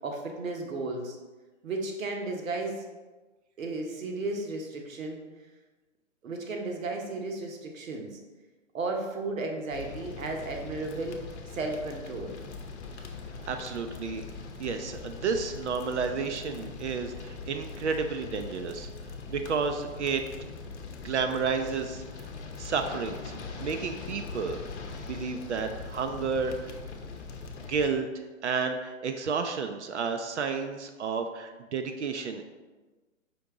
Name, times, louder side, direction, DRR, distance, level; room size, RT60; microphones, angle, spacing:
voice 1, 0.0-1.2 1.6-2.8 3.6-5.2 6.2-8.2 8.7-11.2 11.5-12.4, right 2 dB, 75° right, 2 dB, 1.1 m, -34 dB
sound 1, 9.7-27.9, left 4 dB, 55° left, 0.7 m, -41 dB
voice 2, 13.5-14.2 14.6-18.9 19.3-20.2 21.0-22.0 22.6-23.3 23.6-26.7 27.7-28.1 28.4-32.4, right 5 dB, 60° right, 6 dB, 0.5 m, -31 dB
5.2 x 2.8 x 3.5 m, 1.3 s
hypercardioid pair, 145°, 40 cm